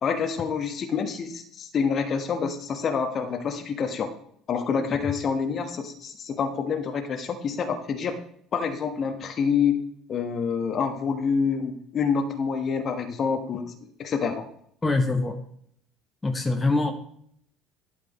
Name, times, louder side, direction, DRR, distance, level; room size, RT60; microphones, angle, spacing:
voice 1, 0.0-4.1 4.5-8.1 8.5-9.8 10.1-13.6 14.0-14.5, left 6 dB, 40° left, 7 dB, 1.1 m, -27 dB
voice 2, 14.8-15.4 16.2-16.9, left 3 dB, 15° left, 5 dB, 1.0 m, -24 dB
12.0 x 5.3 x 4.0 m, 0.66 s
figure-of-eight pair, 60°, 0 cm